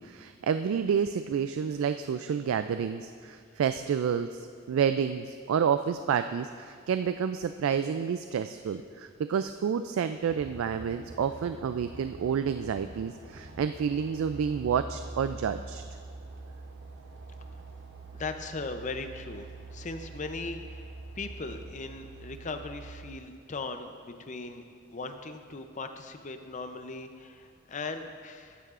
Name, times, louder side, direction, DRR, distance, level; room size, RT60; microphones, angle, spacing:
voice 1, 0.0-15.8, right 7 dB, 75° right, 10 dB, 0.3 m, -29 dB
sound 1, 10.3-23.2, right 2 dB, 60° right, 0.7 m, -45 dB
voice 2, 18.1-24.6 24.9-28.6, left 3 dB, 35° left, 7 dB, 0.5 m, -39 dB
14.5 x 10.0 x 2.5 m, 2.4 s
head